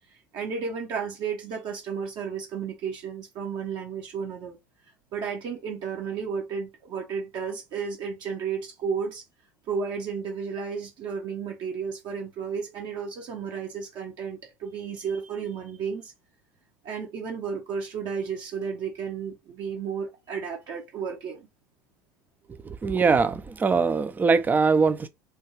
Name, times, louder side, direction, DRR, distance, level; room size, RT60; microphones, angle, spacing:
voice 1, 0.3-4.6 5.1-9.2 9.7-16.1 16.8-21.5, right 6 dB, 55° right, 0.8 m, -33 dB
voice 2, 22.7-25.1, right 4 dB, 20° right, 0.4 m, -22 dB
3.4 x 2.3 x 3.1 m
hypercardioid pair, 80°, 9 cm